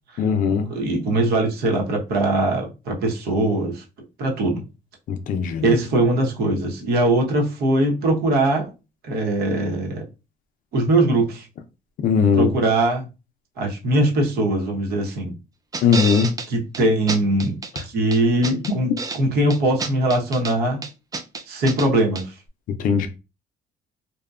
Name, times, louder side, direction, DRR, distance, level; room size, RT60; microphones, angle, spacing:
voice 1, 0.2-0.7 5.3-5.6 12.0-12.5 15.8-16.3 22.8-23.1, left 6 dB, 55° left, 0.5 m, -18 dB
voice 2, 0.7-3.8 4.2-4.6 5.6-8.7 9.0-10.0 10.7-11.5 12.3-13.1 13.6-15.3 16.5-17.6 17.8-20.8 21.5-22.4, right 1 dB, 70° right, 1.0 m, -21 dB
sound 1, 15.7-16.5 16.7-16.8 17.1-17.8 18.1-19.2 19.5-20.5 20.8-21.9 22.1-22.2, right 4 dB, 20° right, 0.4 m, -29 dB
2.7 x 2.2 x 2.3 m
cardioid pair, 110°, 17 cm